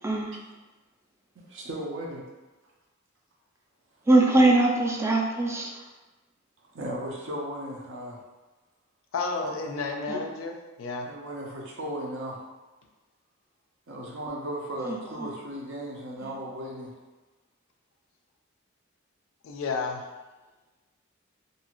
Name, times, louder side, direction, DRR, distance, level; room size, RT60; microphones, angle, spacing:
voice 1, 1.4-2.2 6.7-8.2 9.4-9.8 11.0-12.4 13.9-16.9, equal, 65° right, -2 dB, 0.6 m, -36 dB
voice 2, 4.1-5.7 10.1-10.2 14.8-15.3 16.2-16.3, right 2 dB, 15° right, 0 dB, 0.3 m, -22 dB
voice 3, 9.1-11.1 19.4-20.0, left 4 dB, 75° left, 3 dB, 0.4 m, -31 dB
2.6 x 2.4 x 2.9 m, 1.2 s
head